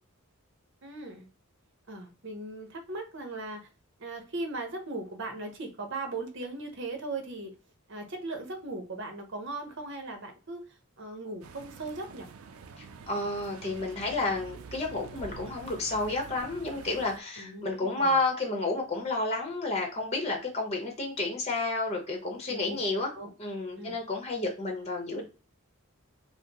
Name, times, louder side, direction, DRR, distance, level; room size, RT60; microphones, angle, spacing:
voice 1, 0.8-1.3 1.9-3.7 4.0-7.5 7.9-10.6 11.0-12.3 17.4-18.1 22.5-22.8 23.1-23.3 23.8-23.9, right 2 dB, 55° right, 1.0 m, -38 dB
sound 1, 11.4-17.2, right 5 dB, 80° right, 0.4 m, -46 dB
voice 2, 12.8-23.1 23.4-25.2, left 2 dB, 30° left, 0.9 m, -31 dB
4.9 x 2.1 x 2.9 m
head